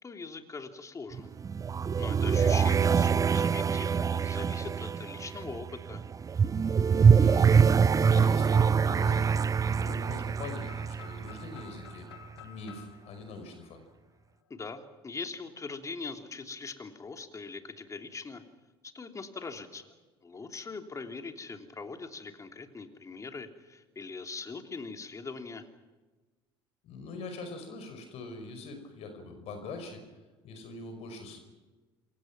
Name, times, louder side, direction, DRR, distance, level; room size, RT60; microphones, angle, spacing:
voice 1, 0.0-1.3 2.0-6.0 14.5-18.4 18.8-19.9 20.2-25.7, left 4 dB, 25° left, 6 dB, 3.1 m, -41 dB
sound 1, 1.1-11.9, right 6 dB, 25° right, 0.8 m, -25 dB
voice 2, 7.0-12.1 12.4-13.8 26.8-30.0 30.4-31.4, left 3 dB, 50° left, 6 dB, 5.4 m, -43 dB
sound 2, 10.6-14.5, left 9 dB, 75° left, 2.0 m, -52 dB
28.5 x 23.5 x 6.1 m, 1.2 s
figure-of-eight pair, 60°, 13 cm